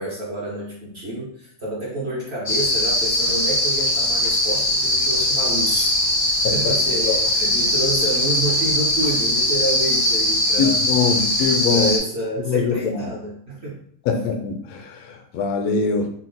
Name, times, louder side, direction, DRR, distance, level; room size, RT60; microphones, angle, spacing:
voice 1, 0.0-10.9 11.7-13.8, right 1 dB, 55° right, -5 dB, 0.7 m, -29 dB
sound 1, 2.5-12.0, left 1 dB, 55° left, 0.6 m, -20 dB
voice 2, 10.6-11.9 12.5-13.0 14.1-16.1, left 5 dB, 85° left, 4 dB, 0.8 m, -23 dB
4.2 x 2.2 x 3.8 m, 0.62 s
omnidirectional pair, 2.4 m